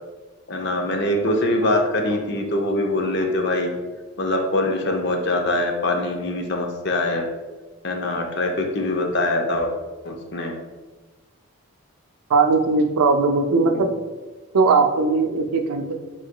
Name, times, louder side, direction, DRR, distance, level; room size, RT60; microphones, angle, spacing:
voice 1, 0.5-3.7 4.2-7.3 7.8-9.7 10.0-10.6 13.6-13.9, left 1 dB, 50° left, 2 dB, 0.6 m, -23 dB
voice 2, 12.3-13.9 14.5-16.0, right 4 dB, 90° right, 5 dB, 0.5 m, -19 dB
4.7 x 4.0 x 2.2 m, 1.3 s
head